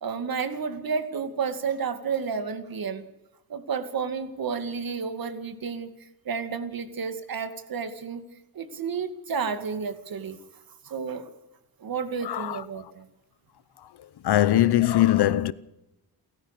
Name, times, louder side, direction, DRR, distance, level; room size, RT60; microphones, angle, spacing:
voice 1, 0.0-3.1 3.5-8.2 8.5-10.4 10.8-11.3 11.8-13.1, right 6 dB, 65° right, 2.3 m, -31 dB
voice 2, 12.2-12.6 14.2-15.5, left 13 dB, 80° left, 0.9 m, -21 dB
28.5 x 14.0 x 6.7 m
cardioid pair, 95°, 38 cm